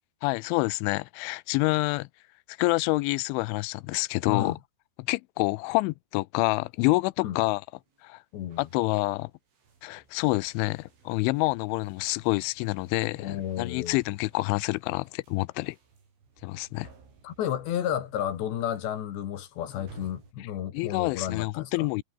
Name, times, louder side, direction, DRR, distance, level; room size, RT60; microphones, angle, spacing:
voice 1, 0.2-2.1 2.6-4.5 5.0-7.6 8.0-8.2 8.6-9.3 9.8-15.8 16.4-16.9 20.7-22.0, left 23 dB, 85° left, 3.1 m, -27 dB
voice 2, 4.3-4.6 7.2-7.4 8.3-8.7 13.1-14.0 17.2-21.9, left 10 dB, 70° left, 4.2 m, -32 dB
sound 1, 6.6-8.1 8.3-20.3, right 5 dB, 85° right, 9.6 m, -57 dB
omnidirectional pair, 5.4 m